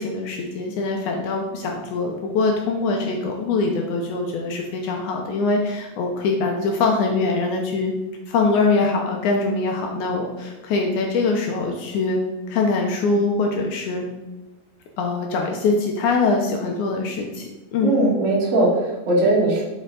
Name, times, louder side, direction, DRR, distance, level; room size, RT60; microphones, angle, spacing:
voice 1, 0.0-7.9 8.3-12.2 12.5-14.1 15.0-17.9, left 3 dB, 80° left, 1 dB, 1.8 m, -23 dB
voice 2, 17.8-19.6, right 2 dB, 75° right, -4 dB, 3.6 m, -19 dB
8.9 x 4.5 x 3.8 m, 1.0 s
omnidirectional pair, 4.3 m